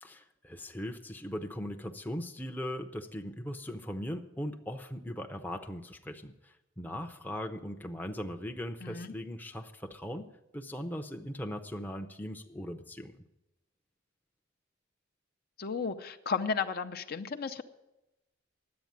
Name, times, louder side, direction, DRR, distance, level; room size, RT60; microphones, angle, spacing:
voice 1, 0.0-10.3 10.5-13.1, equal, 10° left, 5 dB, 0.6 m, -39 dB
voice 2, 8.8-9.1 15.6-17.6, left 5 dB, 50° left, 7 dB, 0.6 m, -34 dB
10.5 x 8.2 x 9.6 m, 0.93 s
head